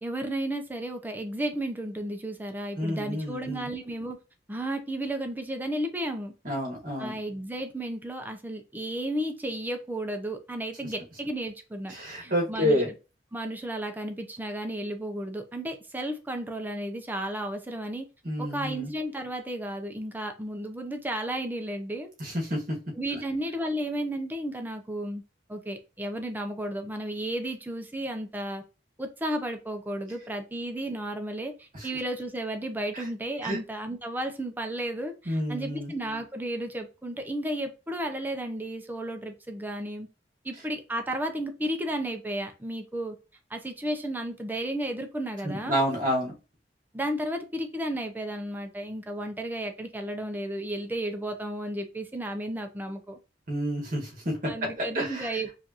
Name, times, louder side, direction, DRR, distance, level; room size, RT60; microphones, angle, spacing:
voice 1, 0.0-4.2 4.5-6.3 7.0-11.9 12.2-12.8 13.3-18.1 18.4-22.1 22.9-25.2 25.5-28.6 29.0-40.1 40.4-43.2 43.5-45.8 46.9-53.2 54.4-55.5, right 1 dB, 10° right, 5 dB, 0.6 m, -33 dB
voice 2, 2.8-3.7 6.4-7.2 11.9-12.9 18.3-18.9 22.2-22.8 31.7-31.9 32.9-33.1 33.4-33.6 35.3-35.9 45.4-46.3 53.5-55.3, equal, 50° right, -1 dB, 1.8 m, -29 dB
4.9 x 2.6 x 2.9 m, 0.31 s
head